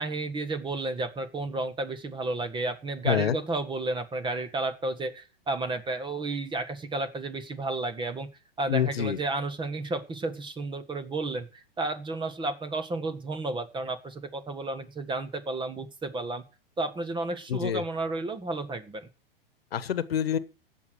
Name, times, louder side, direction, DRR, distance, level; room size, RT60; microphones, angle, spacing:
voice 1, 0.0-8.3 8.6-16.4 16.8-19.1, right 2 dB, 15° right, 1.5 m, -32 dB
voice 2, 3.0-3.4 8.7-9.2 17.5-17.8 19.7-20.4, left 9 dB, 80° left, 1.2 m, -26 dB
16.5 x 6.5 x 6.4 m
hypercardioid pair, 110°, 30 cm